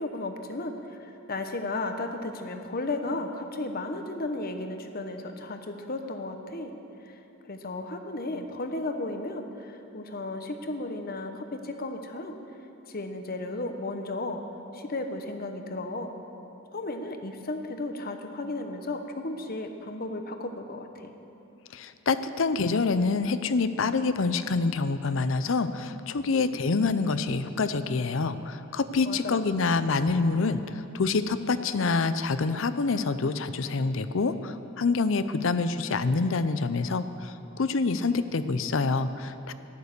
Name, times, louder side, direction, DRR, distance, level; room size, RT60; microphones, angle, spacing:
voice 1, 0.0-6.7 7.0-12.4 12.9-14.4 14.7-16.1 16.7-21.1 29.1-29.5, left 2 dB, 45° left, 6 dB, 1.0 m, -34 dB
voice 2, 21.7-39.5, left 4 dB, 65° left, 12 dB, 0.6 m, -26 dB
14.0 x 11.0 x 6.7 m, 2.9 s
head